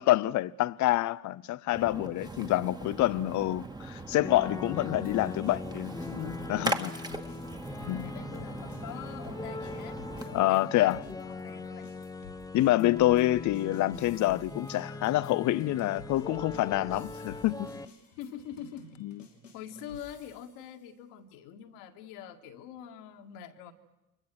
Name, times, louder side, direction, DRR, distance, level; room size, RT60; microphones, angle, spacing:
voice 1, 0.0-6.9 7.9-8.1 10.3-11.0 12.5-17.7 19.0-19.2, left 15 dB, 50° left, 0.8 m, -27 dB
Splash splatter, 1.7-10.4, right 2 dB, 10° right, 2.0 m, -39 dB
sound 1, 4.1-17.8, left 3 dB, 10° left, 1.1 m, -41 dB
sound 2, 5.0-10.6 10.9-20.6, left 3 dB, 90° left, 2.6 m, -52 dB
voice 2, 6.3-6.9 8.0-11.9 18.2-18.9 19.5-23.7, left 9 dB, 65° left, 2.0 m, -45 dB
29.5 x 24.5 x 6.3 m
figure-of-eight pair, 50°, 37 cm